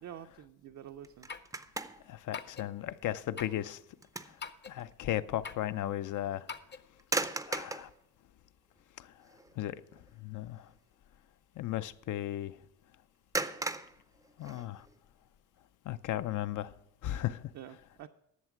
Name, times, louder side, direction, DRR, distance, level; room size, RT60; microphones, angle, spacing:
voice 1, 0.0-1.3 17.5-18.1, right 10 dB, 65° right, 0.5 m, -47 dB
sound 1, 1.0-2.2 2.6-2.8 3.4-4.4 4.8-4.9 7.0-7.9 8.8-8.9 9.3-9.6 9.8-10.1 13.3-14.9, right 3 dB, 10° right, 0.4 m, -37 dB
sound 2, 1.3-1.5 2.3-2.7 3.4-3.6 4.4-4.8 5.4-5.7 6.5-6.9 7.5-7.8, left 6 dB, 35° left, 0.6 m, -43 dB
voice 2, 2.1-3.8 4.7-6.5 7.5-7.9 9.0-9.1 9.6-10.7 11.6-12.6 14.4-14.9 15.9-16.7 17.0-17.5, left 13 dB, 75° left, 0.6 m, -36 dB
11.5 x 7.4 x 5.9 m
cardioid pair, 145°, 31 cm